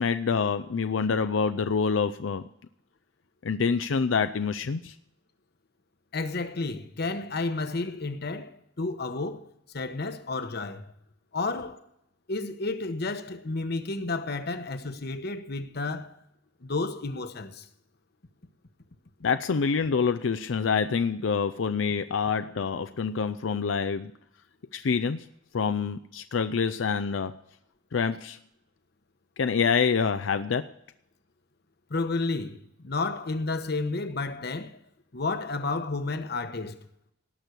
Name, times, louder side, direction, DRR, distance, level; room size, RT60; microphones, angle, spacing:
voice 1, 0.0-2.5 3.4-4.9 19.2-24.1 24.7-25.3 25.5-27.4 27.9-28.4 29.4-30.7, left 5 dB, 85° left, 0.5 m, -26 dB
voice 2, 6.1-9.4 9.7-10.9 11.3-11.8 12.3-16.1 16.6-17.6 31.9-34.8 35.1-36.8, left 3 dB, 55° left, 1.1 m, -31 dB
18.5 x 6.2 x 8.2 m
head